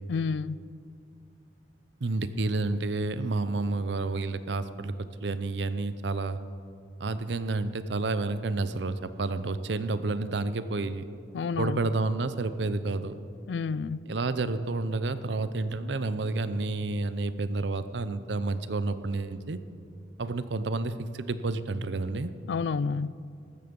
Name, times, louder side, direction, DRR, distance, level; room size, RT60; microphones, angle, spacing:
voice 1, 0.1-0.6 11.3-11.9 13.5-14.0 22.5-23.1, left 5 dB, 80° left, 19 dB, 0.4 m, -30 dB
voice 2, 2.0-4.9 5.2-6.4 7.0-11.1 11.6-13.1 14.1-19.6 20.2-22.3, right 3 dB, 80° right, 13 dB, 0.7 m, -30 dB
14.5 x 13.0 x 5.3 m, 2.4 s
head